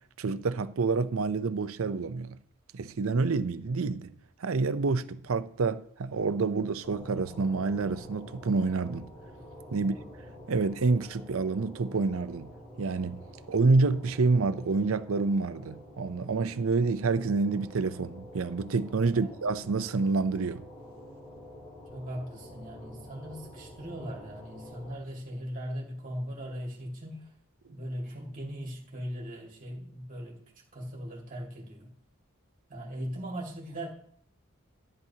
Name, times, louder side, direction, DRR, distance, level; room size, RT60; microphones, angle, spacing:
voice 1, 0.2-2.4 2.7-4.1 4.4-9.1 9.7-10.0 10.5-13.2 13.5-20.6, right 4 dB, 75° right, 0.6 m, -28 dB
sound 1, 6.8-25.0, left 1 dB, 40° left, 2.0 m, -48 dB
voice 2, 21.9-27.3 27.7-30.4 30.7-31.9 32.7-33.9, equal, 40° right, 2.1 m, -39 dB
13.5 x 9.7 x 2.8 m
head